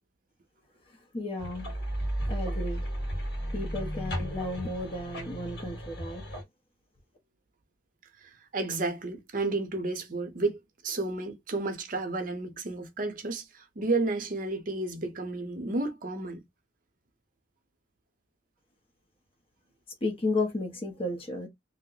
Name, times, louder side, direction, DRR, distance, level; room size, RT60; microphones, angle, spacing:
voice 1, 1.1-1.7 2.3-2.9 3.5-6.2 20.0-21.5, left 2 dB, 30° left, 0.8 m, -33 dB
sound 1, 1.4-6.4, equal, 60° left, 1.7 m, -34 dB
voice 2, 8.5-10.6 10.8-13.4 13.8-16.4, right 3 dB, 50° right, 0.7 m, -31 dB
2.8 x 2.0 x 3.8 m
head